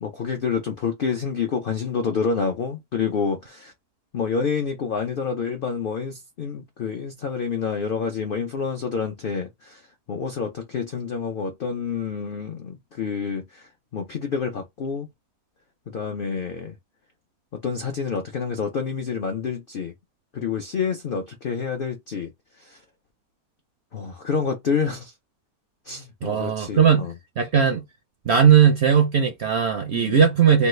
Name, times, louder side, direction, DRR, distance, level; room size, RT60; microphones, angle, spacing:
voice 1, 0.0-3.7 4.1-9.8 10.1-15.1 15.9-16.7 17.6-19.9 20.3-22.3 22.6-22.8 23.9-25.1 25.9-27.1 29.9-30.2, left 5 dB, 70° left, 0.5 m, -28 dB
voice 2, 26.2-27.1 27.4-27.8 28.3-30.7, right 7 dB, 70° right, 0.6 m, -18 dB
3.1 x 2.3 x 3.1 m
omnidirectional pair, 1.6 m